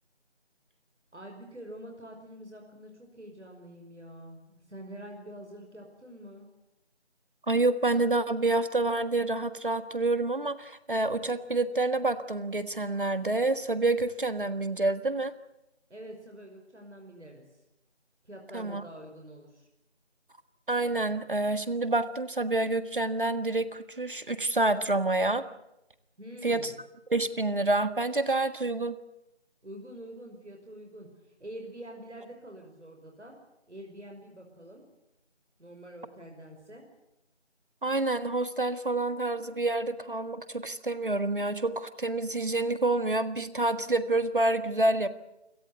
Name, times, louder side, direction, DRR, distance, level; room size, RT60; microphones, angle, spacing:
voice 1, 1.1-6.5 15.9-17.6 18.2-19.7 26.2-26.7 29.6-33.4 33.7-34.8 35.6-36.9, right 1 dB, 80° right, 2 dB, 5.6 m, -46 dB
voice 2, 7.5-15.3 18.5-18.8 20.7-25.4 26.4-26.6 27.1-29.0 37.8-45.1, right 2 dB, 45° right, 12 dB, 1.6 m, -28 dB
28.5 x 17.5 x 8.2 m, 0.89 s
figure-of-eight pair, 175°, 35 cm